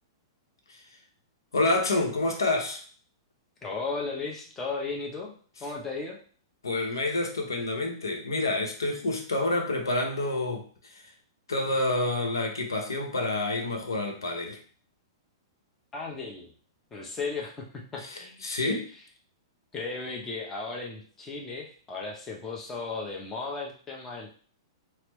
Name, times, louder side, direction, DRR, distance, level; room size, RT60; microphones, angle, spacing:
voice 1, 1.5-2.8 6.6-11.0 11.5-14.6 18.0-18.8, left 2 dB, 85° left, 3 dB, 0.8 m, -28 dB
voice 2, 3.6-5.3 5.6-6.2 15.9-16.5 16.9-17.7 17.9-18.8 19.7-24.3, left 4 dB, 15° left, -1 dB, 0.8 m, -35 dB
4.3 x 2.1 x 3.0 m, 0.43 s
hypercardioid pair, 110°, 2 cm